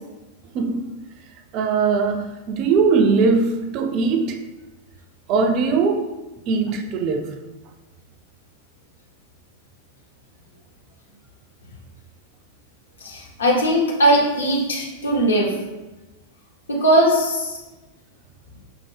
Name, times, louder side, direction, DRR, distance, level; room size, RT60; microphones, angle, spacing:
voice 1, 0.5-0.9 1.5-4.4 5.3-6.1 6.5-7.4, right 4 dB, 40° right, 0.4 m, -20 dB
voice 2, 13.0-15.5 16.7-17.6, right 1 dB, 70° left, 1.1 m, -19 dB
5.5 x 2.7 x 3.3 m
figure-of-eight pair, 90°, 0 cm